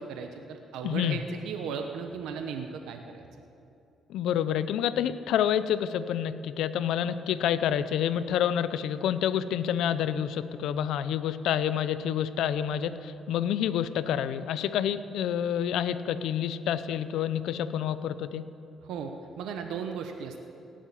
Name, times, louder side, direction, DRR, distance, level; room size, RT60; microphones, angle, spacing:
voice 1, 0.0-3.2 18.8-20.4, right 6 dB, 85° right, 5 dB, 0.9 m, -36 dB
voice 2, 0.8-1.2 4.1-18.5, left 9 dB, 85° left, 14 dB, 0.6 m, -28 dB
17.5 x 7.6 x 8.5 m, 2.7 s
cardioid pair, 90°, 0 cm